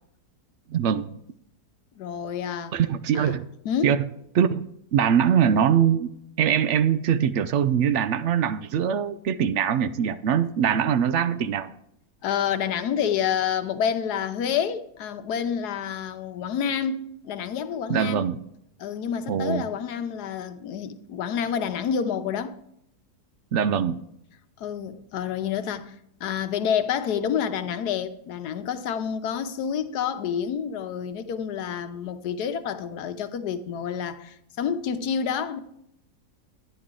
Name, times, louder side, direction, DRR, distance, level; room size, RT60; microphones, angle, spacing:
voice 1, 0.7-1.1 2.7-3.5 3.8-4.0 4.3-4.6 4.9-6.1 6.4-11.7 17.9-18.4 19.3-19.7 23.5-24.0, right 8 dB, 70° right, 0.6 m, -22 dB
voice 2, 2.0-2.7 3.1-3.3 3.6-3.9 12.2-18.3 18.8-22.6 24.6-25.9 26.2-35.6, left 8 dB, 75° left, 1.3 m, -28 dB
11.0 x 10.5 x 3.7 m
omnidirectional pair, 1.7 m